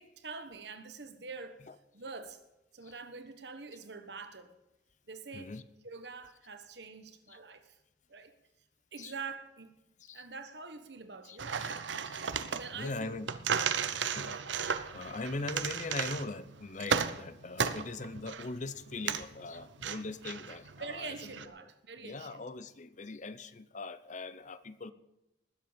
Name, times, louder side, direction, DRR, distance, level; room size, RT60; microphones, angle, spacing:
voice 1, 0.0-1.6 1.9-2.4 2.7-4.6 5.1-5.6 5.8-7.8 8.1-8.3 8.9-9.7 10.1-11.7 12.5-13.2 13.7-14.0 20.8-22.4, right 4 dB, 65° right, 9 dB, 1.4 m, -45 dB
voice 2, 11.2-12.3 12.7-13.3 13.9-21.5 22.0-24.9, left 3 dB, 40° left, 14 dB, 0.7 m, -41 dB
sound 1, 11.4-21.5, right 6 dB, 80° right, 0.8 m, -35 dB
20.0 x 7.9 x 5.2 m, 0.94 s
head